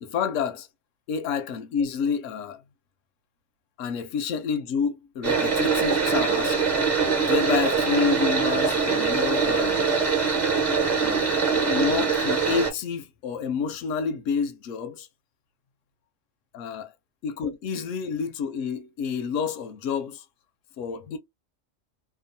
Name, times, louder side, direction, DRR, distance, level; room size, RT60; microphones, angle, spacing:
voice 1, 0.0-0.7 1.1-2.6 3.8-6.6 7.2-9.9 11.0-11.4 11.7-15.1 16.5-16.9 17.2-20.2 20.8-21.2, left 6 dB, 80° left, 1.0 m, -29 dB
sound 1, 5.2-12.7, right 5 dB, 35° right, 1.1 m, -23 dB
2.9 x 2.3 x 2.6 m
omnidirectional pair, 1.3 m